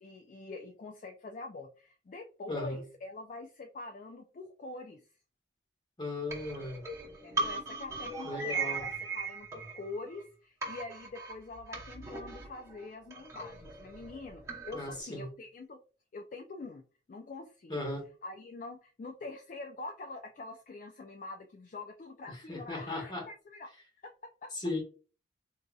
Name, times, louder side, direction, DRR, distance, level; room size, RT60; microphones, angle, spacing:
voice 1, 0.0-5.0 7.0-15.8 16.1-16.8 17.1-17.8 18.2-23.7 24.0-24.1 24.4-24.5, left 3 dB, 45° left, 3 dB, 0.3 m, -45 dB
voice 2, 2.5-2.8 6.0-6.8 8.2-8.9 14.7-15.3 17.7-18.1 22.3-23.3 24.5-24.8, left 2 dB, 25° left, 0 dB, 1.0 m, -37 dB
sound 1, 6.3-10.3 10.6-15.0, right 3 dB, 15° right, 0.8 m, -39 dB
3.9 x 2.7 x 2.3 m, 0.36 s
head